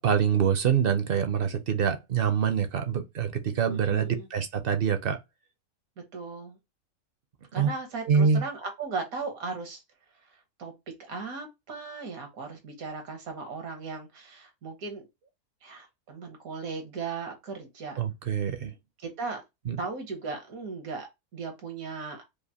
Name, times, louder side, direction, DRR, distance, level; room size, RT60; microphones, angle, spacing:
voice 1, 0.0-5.2 7.6-7.7 8.1-8.4 18.0-18.7 19.7-19.8, right 7 dB, 60° right, 0.6 m, -25 dB
voice 2, 3.7-4.3 6.1-6.6 7.5-9.8 10.6-10.7 11.0-15.1 15.6-18.0 19.0-19.4 19.8-22.2, right 4 dB, 85° right, 1.7 m, -37 dB
4.9 x 2.4 x 2.7 m
omnidirectional pair, 1.4 m